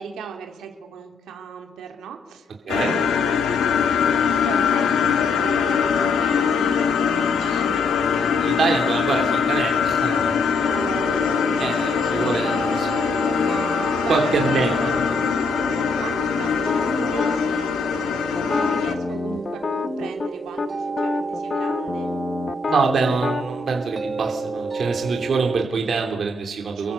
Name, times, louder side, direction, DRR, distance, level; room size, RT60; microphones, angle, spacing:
voice 1, 0.0-7.8 10.7-11.4 14.0-15.0 15.7-17.7 18.4-22.1 26.7-26.9, right 6 dB, 75° right, 3 dB, 3.4 m, -37 dB
sound 1, 2.7-19.0, left 7 dB, 70° left, 2.0 m, -22 dB
voice 2, 7.7-10.4 11.6-13.4 14.1-14.7 22.7-26.9, right 5 dB, 40° right, 2 dB, 3.1 m, -25 dB
sound 2, 10.6-25.7, right 4 dB, 20° right, 1.3 m, -32 dB
sound 3, 16.7-17.4 18.4-20.3 20.6-20.7 21.0-23.5, left 4 dB, 20° left, 0.9 m, -27 dB
29.5 x 23.0 x 6.9 m, 1.3 s
cardioid pair, 180°, 0 cm